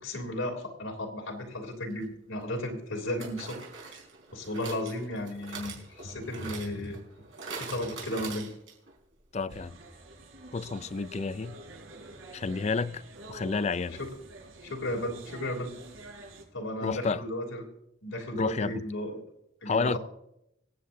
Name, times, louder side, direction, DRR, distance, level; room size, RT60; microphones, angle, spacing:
voice 1, 0.0-4.0 4.3-7.0 7.5-8.5 14.0-14.1 14.6-15.7 16.5-17.6 18.0-19.2 19.6-20.0, left 1 dB, 85° left, 3.1 m, -34 dB
sound 1, 1.9-2.0 3.2-8.9 9.2-9.3 9.5-9.6, right 4 dB, 70° right, 4.9 m, -43 dB
voice 2, 9.3-9.8 10.5-11.6 12.3-13.0 13.3-14.0 16.8-17.2 18.3-18.8 19.7-20.0, left 4 dB, 35° left, 0.4 m, -30 dB
sound 2, 9.5-16.4, right 2 dB, 90° right, 5.6 m, -47 dB
25.0 x 8.7 x 2.7 m
head